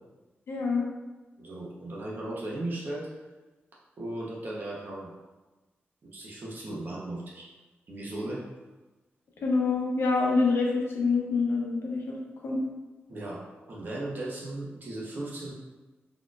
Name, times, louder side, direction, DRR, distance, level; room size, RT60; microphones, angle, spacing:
voice 1, 0.5-0.9 9.4-12.6, left 4 dB, 70° left, -1 dB, 0.7 m, -26 dB
voice 2, 1.4-3.1 4.0-5.1 6.0-7.5 7.9-8.4 13.1-13.4 13.7-15.5, right 1 dB, 50° right, -4 dB, 0.9 m, -36 dB
4.2 x 3.0 x 2.4 m, 1.2 s
wide cardioid pair, 160°, 4 cm